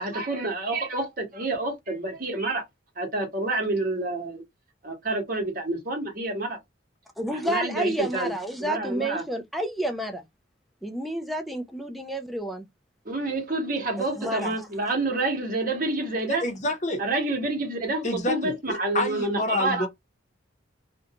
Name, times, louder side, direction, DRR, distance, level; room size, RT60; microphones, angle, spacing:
voice 1, 0.0-2.6 3.0-4.4 4.8-6.6 7.3-8.3 8.6-9.2 13.0-16.4 17.0-19.9, right 2 dB, 45° right, 1.0 m, -28 dB
voice 2, 7.2-10.3 10.8-12.6 14.0-14.7, right 1 dB, ahead, 0.3 m, -30 dB
voice 3, 16.3-17.0 18.0-19.9, left 1 dB, 40° left, 0.7 m, -28 dB
2.5 x 2.2 x 2.7 m
head